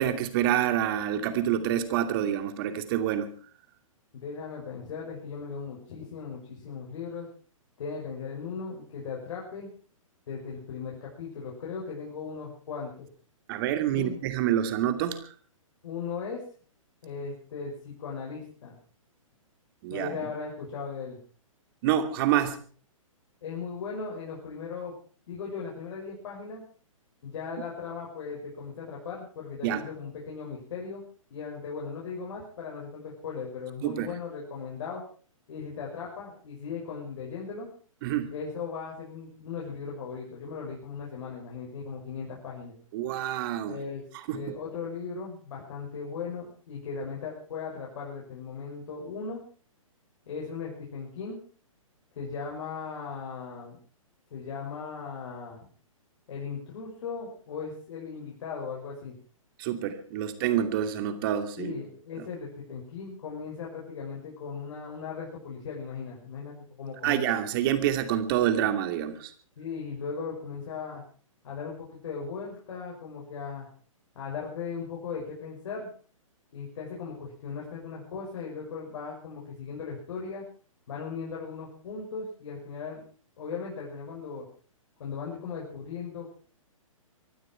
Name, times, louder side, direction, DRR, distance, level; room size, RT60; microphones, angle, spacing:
voice 1, 0.0-3.3 13.5-15.3 19.8-20.2 21.8-22.6 29.6-29.8 33.8-34.1 38.0-38.3 42.9-43.8 44.3-44.4 59.6-61.7 67.0-69.3, right 11 dB, 40° right, 9 dB, 2.6 m, -27 dB
voice 2, 4.1-7.3 7.8-9.7 10.3-13.1 13.9-14.2 15.8-16.4 17.0-18.8 19.9-21.2 23.4-24.9 25.3-26.6 27.2-31.0 31.3-35.0 35.5-37.7 38.3-42.7 43.7-44.0 44.3-49.4 50.3-51.4 52.2-53.8 54.3-55.6 56.3-59.1 61.6-67.4 69.6-71.0 71.4-73.7 74.1-75.9 76.5-80.4 80.9-83.0 83.4-84.5 85.0-86.3, left 5 dB, 55° left, -2 dB, 5.9 m, -38 dB
24.5 x 12.5 x 4.5 m, 0.42 s
figure-of-eight pair, 125°, 18 cm